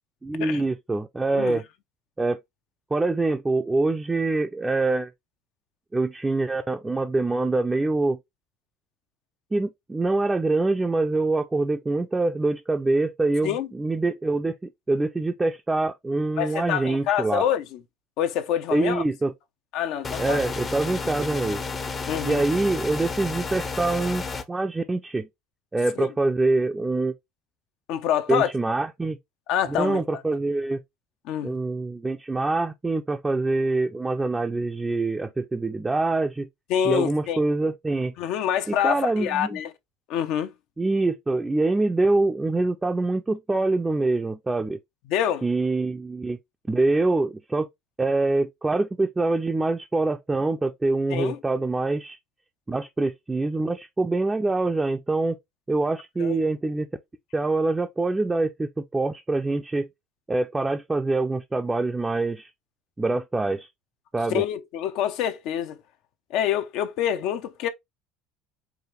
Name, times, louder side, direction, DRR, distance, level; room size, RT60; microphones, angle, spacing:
voice 1, 0.2-1.6 2.2-2.4 2.9-5.1 5.9-8.2 9.5-17.4 18.7-19.3 20.2-21.6 22.2-25.3 25.7-27.1 28.3-29.2 29.7-30.8 31.4-36.5 36.8-38.1 38.7-39.6 40.8-44.8 45.4-46.4 46.7-47.7 48.0-52.2 52.7-55.4 55.7-56.9 57.3-59.9 60.3-62.5 63.0-63.7 64.1-64.4, right 2 dB, 15° right, 0.5 m, -25 dB
voice 2, 16.4-17.8 18.2-19.0 19.7-20.4 22.1-22.5 26.0-26.1 27.9-28.5 29.5-30.0 31.3-31.5 36.7-37.4 38.2-39.7 40.1-40.5 45.1-45.4 51.1-51.4 56.2-56.4 64.3-65.8 66.3-67.7, left 10 dB, 65° left, 0.6 m, -26 dB
sound 1, 20.0-24.4, left 4 dB, 30° left, 0.6 m, -31 dB
4.8 x 2.5 x 3.1 m
supercardioid pair, 100°, 0 cm